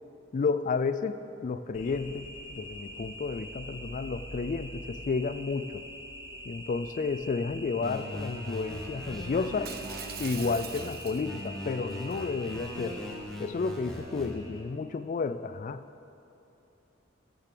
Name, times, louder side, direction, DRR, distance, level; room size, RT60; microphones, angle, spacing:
voice 1, 0.3-1.2 1.4-5.9 6.5-9.7 10.2-13.0 13.4-15.8, left 4 dB, 40° left, 13 dB, 0.3 m, -31 dB
sound 1, 1.7-14.6, equal, 80° left, 1.8 m, -44 dB
sound 2, 7.8-10.8 11.2-14.3, left 1 dB, 5° left, 1.4 m, -41 dB
Shatter, 9.7-11.5 11.9-12.2, right 9 dB, 50° right, 0.6 m, -43 dB
15.0 x 6.8 x 6.7 m, 2.8 s
head